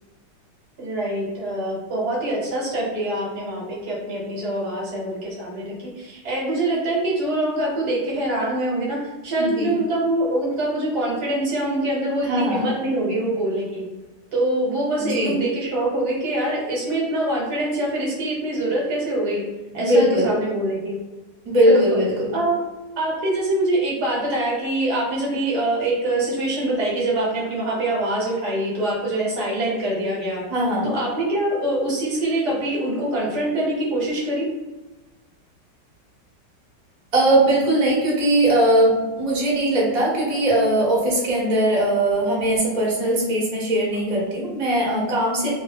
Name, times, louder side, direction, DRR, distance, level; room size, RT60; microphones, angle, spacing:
voice 1, 0.8-9.0 9.2-13.8 14.3-19.4 19.7-21.0 21.7-22.0 22.3-22.6 23.0-30.4 30.8-34.5, right 1 dB, 65° right, -4 dB, 1.6 m, -24 dB
voice 2, 9.4-9.7 12.2-12.7 15.0-15.4 19.7-20.4 21.4-22.4 30.5-30.9 37.1-45.5, right 1 dB, 25° right, -5 dB, 1.1 m, -20 dB
3.1 x 2.9 x 3.7 m, 1.2 s
omnidirectional pair, 1.9 m